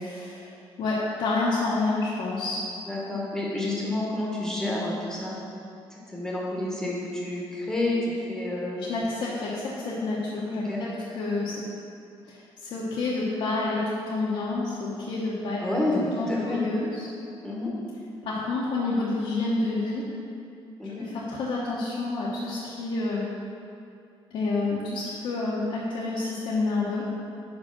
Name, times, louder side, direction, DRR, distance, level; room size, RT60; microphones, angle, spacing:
voice 1, 0.8-2.6 8.8-10.9 11.1-11.6 12.3-15.6 16.2-17.1 18.2-20.0 20.8-23.3 24.3-27.0, left 3 dB, 60° left, -7 dB, 1.0 m, -28 dB
voice 2, 2.9-5.4 5.9-8.8 10.6-10.8 15.6-16.7 17.4-17.7 20.8-21.1, left 2 dB, 5° left, -5 dB, 1.2 m, -29 dB
5.3 x 5.0 x 5.9 m, 2.6 s
cardioid pair, 145°, 10 cm